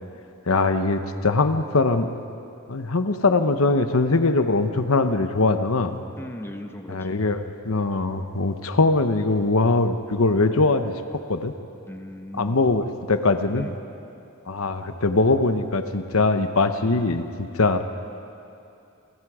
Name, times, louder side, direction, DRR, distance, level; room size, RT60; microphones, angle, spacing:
voice 1, 0.5-2.1 2.7-6.0 6.9-11.5 12.3-13.7 14.5-17.8, left 3 dB, 70° left, 8 dB, 1.0 m, -22 dB
voice 2, 6.2-7.2 11.9-12.6 13.5-13.8, left 1 dB, 10° left, 5 dB, 1.1 m, -37 dB
29.5 x 22.0 x 5.0 m, 2.6 s
head